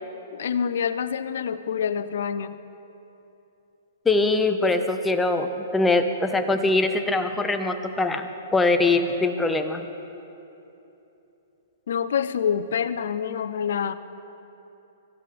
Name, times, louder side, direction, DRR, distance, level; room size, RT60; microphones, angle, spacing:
voice 1, 0.3-2.5 11.9-13.9, left 7 dB, 70° left, 13 dB, 0.7 m, -26 dB
voice 2, 4.0-9.8, left 2 dB, 10° left, 7 dB, 1.1 m, -22 dB
25.0 x 15.5 x 3.4 m, 3.0 s
hypercardioid pair, 120°, 0 cm